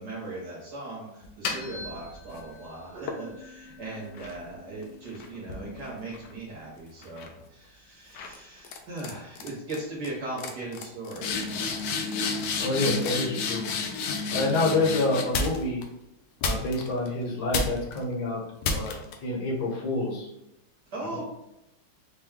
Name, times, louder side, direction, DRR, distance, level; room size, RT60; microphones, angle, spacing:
voice 1, 0.0-11.7 20.9-21.2, right 2 dB, 55° right, -4 dB, 1.4 m, -38 dB
sound 1, 1.2-2.5 3.1-6.6 7.0-7.4 8.2-8.4 8.6-9.1 9.4-9.8 10.0-10.1 10.4-15.8 16.4-17.1 17.5-18.0 18.6-19.1, left 4 dB, 75° left, 1.0 m, -32 dB
voice 2, 12.6-13.7 14.3-15.8 16.4-18.9 19.2-20.3, left 2 dB, 55° left, -2 dB, 1.3 m, -27 dB
4.5 x 2.2 x 3.5 m, 0.85 s
omnidirectional pair, 2.3 m